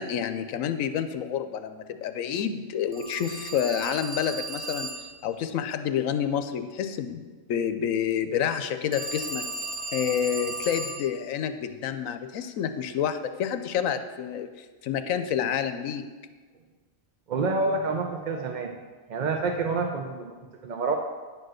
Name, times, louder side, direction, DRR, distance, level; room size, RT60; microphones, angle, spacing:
voice 1, 0.0-4.9 5.2-7.2 7.5-9.4 9.9-14.5 14.8-16.0, left 8 dB, 85° left, 9 dB, 1.0 m, -28 dB
Telephone, 2.9-5.2 8.9-11.1, right 2 dB, 85° right, 1.6 m, -35 dB
voice 2, 17.3-18.7 19.1-20.3 20.6-21.0, right 3 dB, 50° right, 3 dB, 0.5 m, -27 dB
9.6 x 4.7 x 6.3 m, 1.4 s
omnidirectional pair, 1.4 m